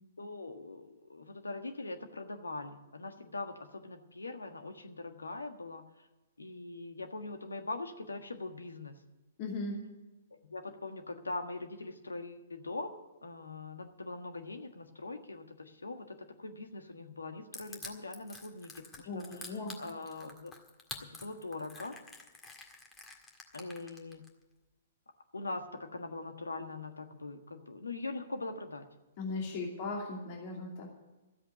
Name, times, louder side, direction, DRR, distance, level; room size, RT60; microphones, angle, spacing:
voice 1, 0.2-5.8 6.4-9.0 10.4-20.5 21.0-22.0 23.5-24.3 25.3-28.9 29.5-29.6, left 2 dB, 85° left, 6 dB, 1.5 m, -42 dB
voice 2, 9.4-9.8 19.1-19.8 29.2-30.9, left 3 dB, 45° left, -1 dB, 2.6 m, -38 dB
Crushing, 17.5-24.3, left 3 dB, 15° left, 1.9 m, -47 dB
13.5 x 8.0 x 9.7 m, 1.1 s
figure-of-eight pair, 120°, 0 cm